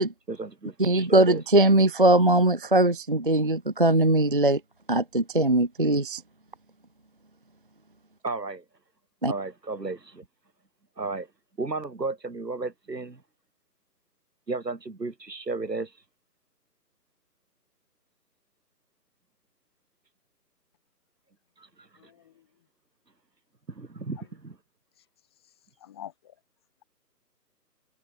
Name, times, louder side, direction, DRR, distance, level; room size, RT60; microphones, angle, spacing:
voice 1, 0.3-1.4 8.2-8.6 9.3-10.3 11.0-11.3 11.6-13.2 14.5-15.9 21.6-21.9 23.7-24.6, right 3 dB, 90° right, 3.6 m, -34 dB
voice 2, 0.8-4.6 4.9-6.2 9.2-9.3, right 2 dB, 35° right, 0.5 m, -21 dB
voice 3, 22.0-22.5 24.2-24.3 25.4-25.5 25.8-26.4, left 11 dB, 15° left, 1.2 m, -46 dB
figure-of-eight pair, 155°, 48 cm